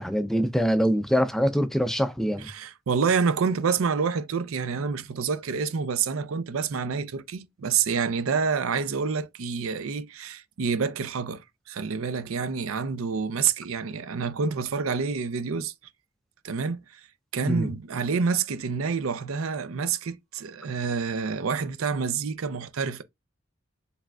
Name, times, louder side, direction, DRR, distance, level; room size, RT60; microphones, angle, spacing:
voice 1, 0.0-2.5 17.4-17.7, equal, ahead, 0.4 m, -24 dB
voice 2, 2.5-15.7 16.4-17.0 17.3-23.0, right 5 dB, 80° right, 0.5 m, -28 dB
4.8 x 3.3 x 2.3 m
head